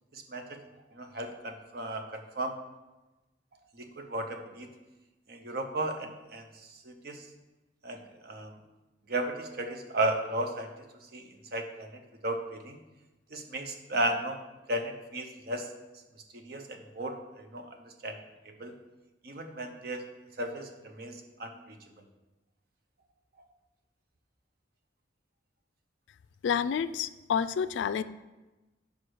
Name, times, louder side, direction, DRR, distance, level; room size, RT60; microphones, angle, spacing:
voice 1, 0.1-0.6 0.9-2.5 3.7-4.7 5.3-7.2 7.8-8.5 9.1-10.7 11.1-11.2 11.5-12.8 13.3-14.4 14.7-15.7 16.3-17.7 18.0-18.2 18.4-18.7 19.2-20.0 20.4-21.6, right 1 dB, 55° right, 5 dB, 0.7 m, -35 dB
voice 2, 26.4-28.0, left 7 dB, 75° left, 14 dB, 0.3 m, -29 dB
5.2 x 4.9 x 6.1 m, 1.1 s
head